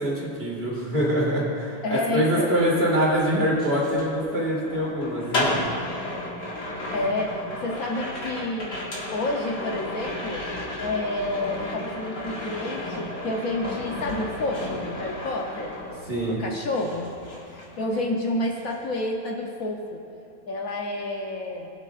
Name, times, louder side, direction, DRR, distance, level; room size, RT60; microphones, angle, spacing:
voice 1, 0.0-5.8 16.1-16.4, equal, 35° right, -4 dB, 2.2 m, -24 dB
voice 2, 1.8-2.6 6.9-8.8 9.1-10.4 10.8-15.8 16.3-17.1 17.5-20.0 20.5-21.7, left 2 dB, 60° left, 0 dB, 1.1 m, -29 dB
sound 1, 2.4-16.4 16.7-18.2 18.5-18.8, left 1 dB, 75° left, 2.4 m, -33 dB
21.5 x 7.4 x 2.4 m, 2.6 s
omnidirectional pair, 1.8 m